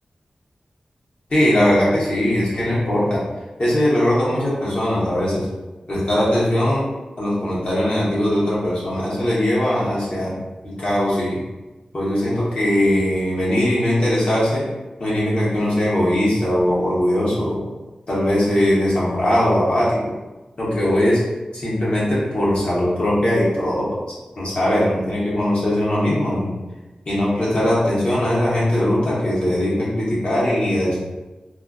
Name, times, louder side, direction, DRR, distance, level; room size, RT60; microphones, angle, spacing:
voice 1, 1.3-3.2 3.6-5.5 5.9-6.8 7.2-10.4 10.6-11.4 11.9-14.6 15.0-17.6 18.1-20.0 20.6-21.2 21.5-23.9 24.4-26.5 27.1-31.0, left 1 dB, 55° left, -7 dB, 0.9 m, -20 dB
2.3 x 2.2 x 2.4 m, 1.1 s
wide cardioid pair, 105°, 2 cm